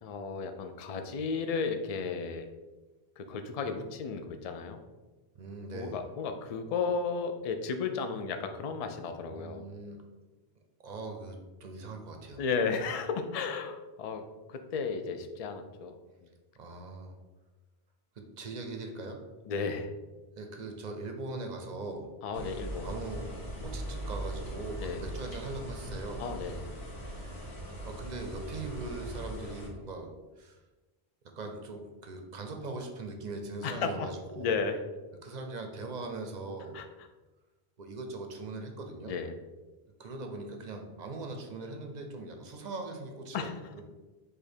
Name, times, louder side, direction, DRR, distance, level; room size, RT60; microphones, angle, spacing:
voice 1, 0.0-2.5 3.2-4.8 5.7-9.6 12.4-14.2 14.5-15.9 19.5-19.9 22.2-22.9 24.8-25.0 26.2-26.7 33.6-34.1 34.4-34.8 36.7-36.8 39.1-39.3 43.3-43.6, left 5 dB, 55° left, 7 dB, 0.4 m, -34 dB
voice 2, 5.3-6.0 9.3-10.0 10.8-12.4 16.6-17.2 18.2-19.2 20.4-22.1 22.8-23.2 23.6-26.2 27.1-27.6 27.8-30.6 31.2-34.6 35.2-36.8 37.8-39.1 40.0-43.5 43.7-43.8, right 3 dB, 50° right, 4 dB, 0.7 m, -41 dB
sound 1, 22.3-29.7, right 1 dB, 85° left, 1.5 m, -40 dB
5.1 x 2.4 x 4.3 m, 1.2 s
omnidirectional pair, 1.1 m